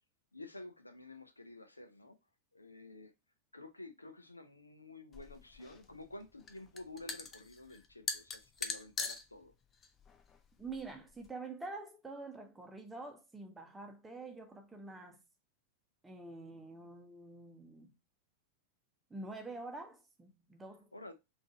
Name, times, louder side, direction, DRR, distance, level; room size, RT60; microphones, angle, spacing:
voice 1, 0.3-2.2 2.5-3.1 3.5-9.5 20.9-21.1, left 2 dB, 80° left, 0.5 m, -51 dB
sound 1, 5.1-11.3, left 4 dB, 25° left, 0.5 m, -43 dB
voice 2, 10.6-15.2 16.0-17.9 19.1-20.9, right 3 dB, 10° right, 0.8 m, -47 dB
3.8 x 2.6 x 3.5 m
figure-of-eight pair, 90°, 0 cm